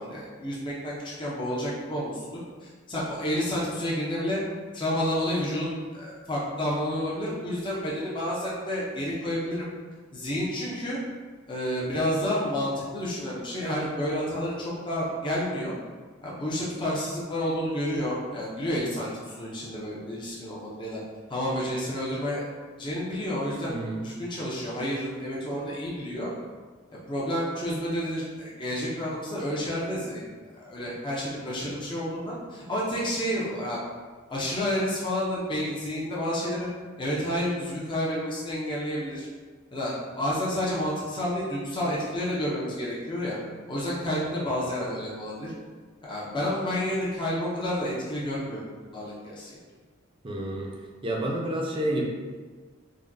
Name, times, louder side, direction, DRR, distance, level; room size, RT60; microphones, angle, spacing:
voice 1, 0.0-4.4 4.7-9.7 10.1-11.0 11.5-15.7 16.2-21.0 21.3-22.4 22.8-26.3 27.1-33.8 34.3-36.7 37.0-39.3 39.7-43.4 43.7-45.5 46.0-48.6 48.9-49.6, equal, 25° left, -6 dB, 0.6 m, -30 dB
voice 2, 23.7-24.0 50.2-50.7 51.0-52.0, right 1 dB, 25° right, -1 dB, 0.5 m, -29 dB
4.9 x 2.2 x 2.6 m, 1.5 s
head